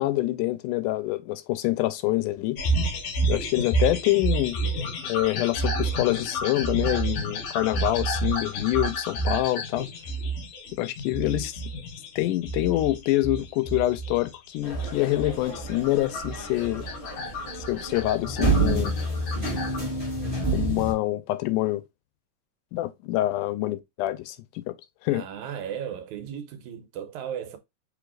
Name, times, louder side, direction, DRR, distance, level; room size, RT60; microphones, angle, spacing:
voice 1, 0.0-2.6 3.3-4.6 5.1-9.9 10.8-11.6 12.2-16.9 17.6-19.0 20.5-21.8 22.7-24.8 25.0-25.3, left 17 dB, 90° left, 2.1 m, -26 dB
sound 1, 2.6-19.8, right 2 dB, 70° left, 3.2 m, -30 dB
sound 2, 14.6-20.9, right 2 dB, 10° left, 1.8 m, -29 dB
voice 2, 25.1-27.6, right 9 dB, 80° right, 2.1 m, -35 dB
6.1 x 3.3 x 2.4 m
omnidirectional pair, 3.6 m